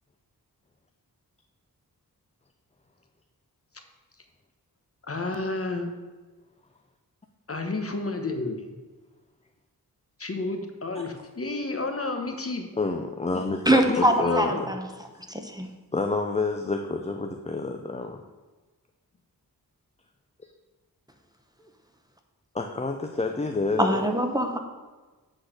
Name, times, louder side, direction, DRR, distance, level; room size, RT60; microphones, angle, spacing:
voice 1, 5.1-5.9 7.5-8.6 10.2-12.7 13.9-14.7, left 3 dB, 40° left, 5 dB, 1.0 m, -30 dB
voice 2, 12.8-14.5 15.9-18.2 22.5-24.1, left 3 dB, 20° left, 4 dB, 0.5 m, -28 dB
voice 3, 13.7-14.9 15.3-15.7 23.8-24.6, right 1 dB, 10° right, 4 dB, 0.8 m, -23 dB
8.1 x 4.0 x 6.5 m, 1.2 s
wide cardioid pair, 75°, 37 cm